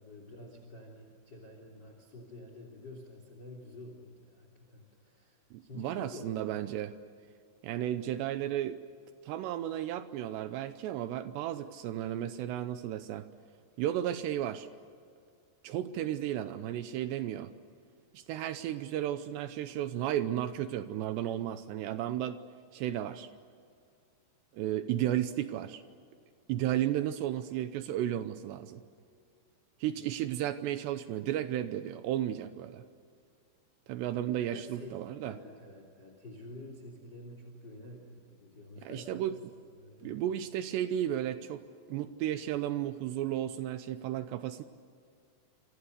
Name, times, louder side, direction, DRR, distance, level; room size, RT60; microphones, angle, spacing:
voice 1, 0.0-6.3 34.5-34.9 35.2-39.4 39.6-40.2, left 2 dB, 25° left, 3 dB, 3.3 m, -49 dB
voice 2, 5.5-6.9 7.6-8.8 9.2-13.3 13.8-14.7 15.6-17.5 18.1-22.4 22.7-23.3 24.5-25.8 26.5-28.8 29.8-32.8 33.9-35.3 38.8-39.4 40.0-41.6 41.9-44.6, right 12 dB, 80° right, 11 dB, 2.9 m, -33 dB
27.5 x 27.0 x 6.7 m, 2.3 s
omnidirectional pair, 5.1 m